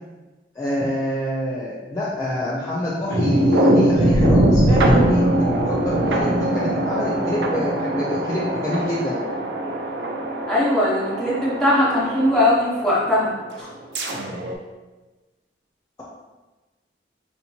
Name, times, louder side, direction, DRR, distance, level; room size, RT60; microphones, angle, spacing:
voice 1, 0.6-9.2, left 1 dB, 20° left, -6 dB, 0.5 m, -26 dB
sound 1, 3.1-13.2 13.7-14.5, right 1 dB, 90° right, 0.6 m, -21 dB
voice 2, 10.5-13.3 13.6-13.7, left 1 dB, 5° left, -7 dB, 1.1 m, -20 dB
4.5 x 2.9 x 2.8 m, 1.2 s
head